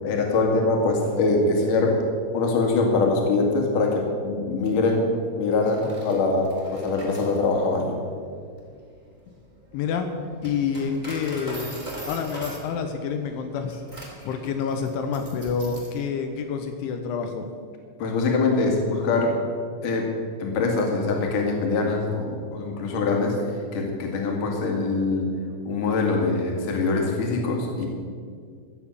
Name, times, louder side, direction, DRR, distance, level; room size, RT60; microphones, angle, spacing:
voice 1, 0.0-2.1 2.3-5.1 5.4-8.0 18.0-19.4 19.8-20.1 20.4-23.4 23.7-25.3 25.7-27.9, left 3 dB, 50° left, 1 dB, 3.0 m, -23 dB
Coin (dropping), 5.5-16.0, right 1 dB, 10° right, 2.7 m, -42 dB
voice 2, 9.7-10.1 10.4-11.7 12.1-13.8 14.2-17.5, left 6 dB, 85° left, 5 dB, 3.3 m, -28 dB
15.5 x 7.4 x 8.6 m, 2.1 s
omnidirectional pair, 5.5 m